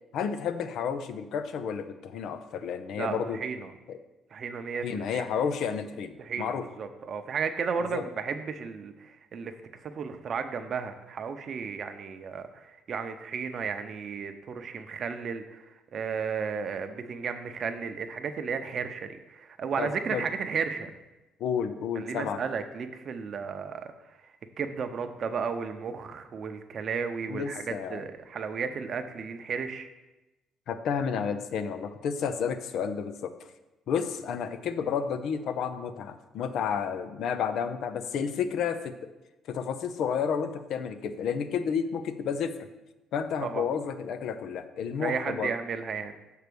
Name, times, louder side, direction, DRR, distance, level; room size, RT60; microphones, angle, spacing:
voice 1, 0.1-3.4 3.9-4.0 4.8-6.6 7.9-8.0 19.8-20.2 21.4-22.4 27.3-28.0 30.7-33.3 33.9-38.9 39.5-42.5 43.1-45.5, left 7 dB, 65° left, 10 dB, 0.6 m, -31 dB
voice 2, 3.0-3.7 4.3-5.2 6.2-20.9 21.9-29.9 43.4-43.7 45.0-46.1, right 6 dB, 45° right, 7 dB, 0.7 m, -34 dB
6.6 x 4.6 x 6.9 m, 1.0 s
cardioid pair, 125°, 0 cm